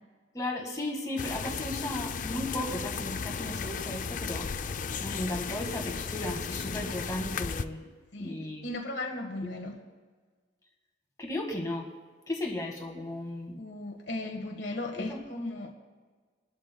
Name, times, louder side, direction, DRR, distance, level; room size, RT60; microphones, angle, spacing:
voice 1, 0.3-4.5 5.0-7.9 8.2-8.7 9.4-9.5 11.2-11.9 12.3-13.6 15.0-15.2, left 1 dB, 15° left, 0 dB, 1.7 m, -35 dB
sound 1, 1.2-7.6, left 5 dB, 40° left, 0.4 m, -35 dB
voice 2, 8.1-9.8 13.6-15.7, left 2 dB, 65° left, 2 dB, 1.5 m, -36 dB
22.0 x 12.5 x 2.2 m, 1.4 s
head